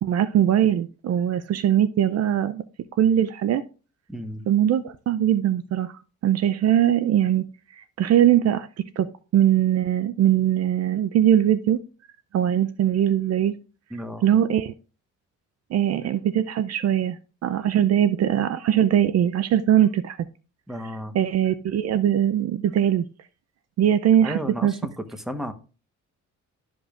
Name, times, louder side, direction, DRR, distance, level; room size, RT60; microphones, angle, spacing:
voice 1, 0.0-2.6 3.0-3.6 4.5-5.9 6.2-7.4 7.8-8.7 9.0-9.1 9.3-11.8 12.3-13.5 14.2-14.7 15.7-20.2 20.8-23.0 23.8-24.7, right 10 dB, 55° right, 14 dB, 0.5 m, -21 dB
voice 2, 4.1-4.4 13.9-14.3 20.7-21.1 24.2-24.9 25.3-25.5, equal, ahead, 8 dB, 1.1 m, -33 dB
12.0 x 5.1 x 2.4 m, 0.34 s
cardioid pair, 90°, 30 cm